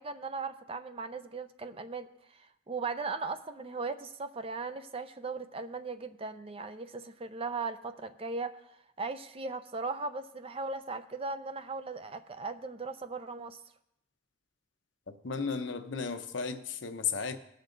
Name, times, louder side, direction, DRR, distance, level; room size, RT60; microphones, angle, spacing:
voice 1, 0.0-2.1 2.3-8.6 9.0-13.6, right 4 dB, 30° right, 10 dB, 0.5 m, -38 dB
voice 2, 15.2-17.4, left 5 dB, 75° left, 8 dB, 0.8 m, -34 dB
18.5 x 6.5 x 3.9 m, 0.80 s
head